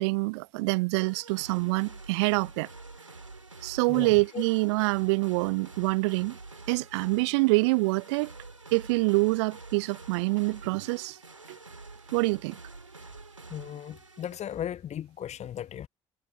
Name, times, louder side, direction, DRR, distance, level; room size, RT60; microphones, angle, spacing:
voice 1, 0.0-2.7 3.6-6.4 6.7-8.3 8.7-11.2 11.5-11.6 12.1-12.6, right 26 dB, 70° right, 0.4 m, -26 dB
sound 1, 0.9-14.7, right 3 dB, 90° right, 1.9 m, -47 dB
voice 2, 3.9-4.4 13.5-15.9, left 10 dB, 45° left, 1.1 m, -37 dB
figure-of-eight pair, 45°, 16 cm